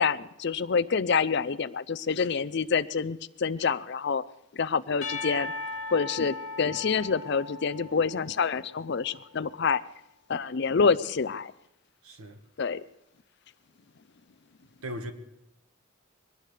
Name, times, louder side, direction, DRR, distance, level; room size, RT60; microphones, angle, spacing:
voice 1, 0.0-4.2 4.5-5.5 5.9-9.8 10.3-11.5 12.6-12.8, left 5 dB, 50° left, 0.5 m, -27 dB
Percussion / Church bell, 5.0-9.2, left 3 dB, 85° left, 1.3 m, -38 dB
voice 2, 12.0-12.4 14.8-15.1, equal, 90° right, 1.7 m, -37 dB
23.0 x 18.0 x 3.3 m
head